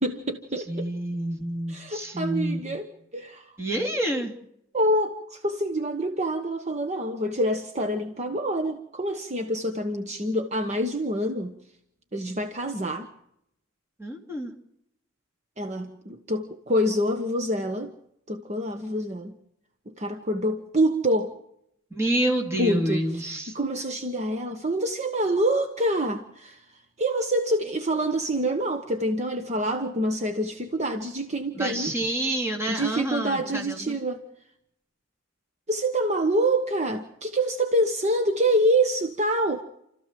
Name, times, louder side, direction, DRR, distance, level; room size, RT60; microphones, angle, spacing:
voice 1, 0.0-0.9 1.7-2.9 3.1-3.5 4.7-11.6 12.1-13.1 15.6-17.9 18.3-19.3 19.9-21.4 22.6-23.0 23.5-26.6 27.0-31.9 32.7-34.2 35.7-39.6, right 1 dB, 35° right, 6 dB, 1.3 m, -26 dB
voice 2, 0.7-2.8 3.6-4.3 14.0-14.5 21.9-23.5 31.5-34.0, right 1 dB, 15° right, 2 dB, 3.1 m, -28 dB
29.0 x 14.5 x 7.6 m, 0.79 s
head